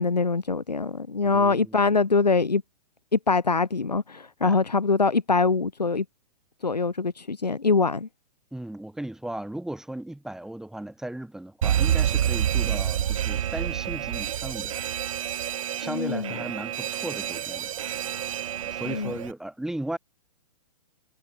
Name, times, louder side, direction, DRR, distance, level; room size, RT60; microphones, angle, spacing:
voice 1, 0.0-2.6 3.1-6.0 6.6-8.1 15.8-16.4 18.9-19.1, left 4 dB, 75° left, 2.7 m, -23 dB
voice 2, 1.2-2.0 4.4-4.6 8.5-14.7 15.8-17.7 18.6-20.0, right 1 dB, ahead, 4.6 m, -36 dB
Alarm, 11.6-19.3, right 10 dB, 50° right, 2.9 m, -28 dB
figure-of-eight pair, 115°, 21 cm